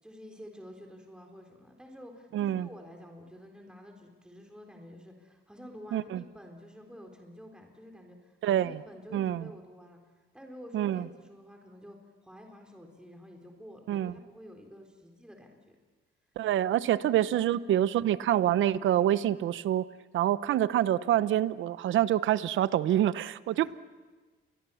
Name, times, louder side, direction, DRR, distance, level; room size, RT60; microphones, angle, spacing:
voice 1, 0.0-10.0 10.3-12.0 12.2-15.8 23.5-23.7, equal, 5° right, 2 dB, 4.0 m, -49 dB
voice 2, 2.3-2.7 5.9-6.2 8.4-8.8 9.1-9.5 10.7-11.1 13.9-14.1 16.4-19.8 20.1-23.7, right 12 dB, 75° right, 16 dB, 0.9 m, -26 dB
29.5 x 23.0 x 7.1 m, 1.3 s
cardioid pair, 90°, 20 cm